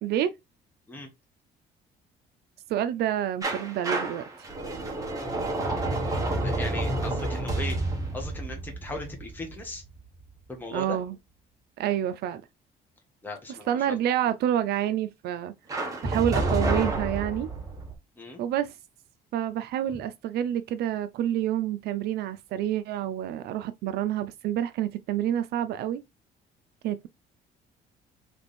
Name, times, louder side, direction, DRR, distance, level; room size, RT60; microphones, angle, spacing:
voice 1, 0.0-0.3 2.7-4.5 10.7-11.2 11.8-12.4 13.5-15.5 16.0-17.5 18.4-18.8 19.3-26.0 26.8-27.1, right 11 dB, 70° right, 0.5 m, -28 dB
sound 1, 3.4-10.2 15.7-17.9, right 2 dB, 20° right, 1.7 m, -29 dB
voice 2, 6.4-7.8 8.1-9.8 10.5-11.0 13.2-14.0 18.2-18.4, left 2 dB, 10° left, 1.2 m, -37 dB
3.3 x 3.3 x 4.1 m
cardioid pair, 110°, 17 cm